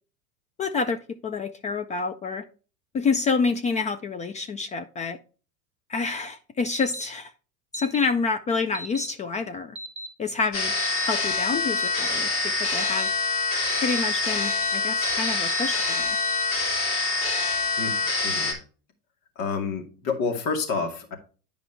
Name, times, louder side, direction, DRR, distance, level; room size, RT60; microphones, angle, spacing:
voice 1, 0.6-2.4 2.9-5.2 5.9-7.3 7.7-9.8 10.2-10.7 11.0-13.1 13.8-16.1, left 4 dB, 20° left, 9 dB, 0.3 m, -28 dB
sound 1, 6.7-7.0 7.7-8.1 8.7-9.1 9.8-10.1 10.8-11.1 11.8-12.1 12.8-13.1 13.7-14.0 14.4-14.7 15.0-16.4, equal, 15° right, 0.8 m, -36 dB
sound 2, 10.5-18.5, left 3 dB, 90° left, 3.8 m, -26 dB
voice 2, 17.8-18.6 19.4-21.2, left 4 dB, 60° left, 3 dB, 2.4 m, -29 dB
9.6 x 5.1 x 3.3 m, 0.36 s
hypercardioid pair, 95°, 45 cm